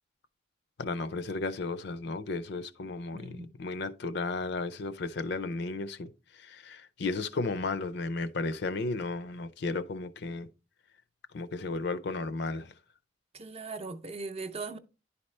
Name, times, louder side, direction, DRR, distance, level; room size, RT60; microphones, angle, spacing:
voice 1, 0.8-10.5 11.3-12.7, left 3 dB, 60° left, 0.5 m, -34 dB
voice 2, 3.1-3.5 13.3-14.8, right 3 dB, 30° right, 0.5 m, -39 dB
10.5 x 4.2 x 3.2 m
head